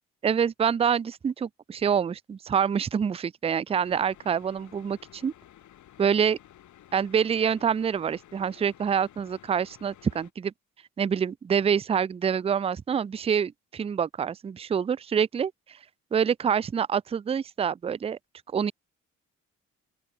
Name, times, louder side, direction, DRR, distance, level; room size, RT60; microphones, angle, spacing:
voice 1, 0.2-5.3 6.0-6.4 6.9-10.5 11.0-15.5 16.1-18.2 18.5-18.7, right 7 dB, 20° right, 0.4 m, -26 dB
sound 1, 3.7-10.3, left 12 dB, 75° left, 4.0 m, -54 dB
open air
cardioid pair, 90°, 30 cm